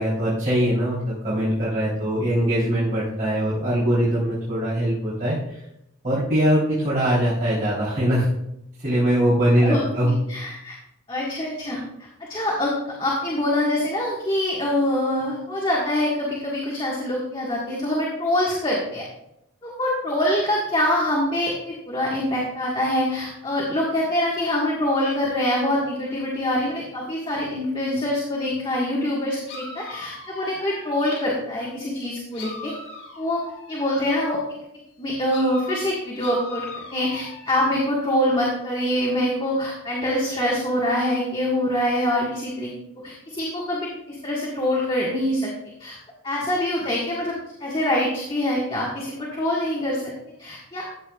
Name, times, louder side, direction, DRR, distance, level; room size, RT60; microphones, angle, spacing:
voice 1, 0.0-5.6 6.0-8.3 8.8-10.1, equal, 40° right, -9 dB, 3.5 m, -22 dB
voice 2, 9.6-10.8 11.1-19.0 19.6-32.7 33.2-33.4 33.7-34.4 35.0-42.7 43.0-45.5 45.8-46.0 46.2-47.3 47.6-50.0 50.4-50.9, left 1 dB, 25° left, -4 dB, 1.6 m, -25 dB
sound 1, 28.6-28.7 29.5-31.7 32.3-34.2 35.3-38.2, left 2 dB, 75° left, 3.6 m, -40 dB
13.5 x 8.5 x 2.4 m, 0.83 s
head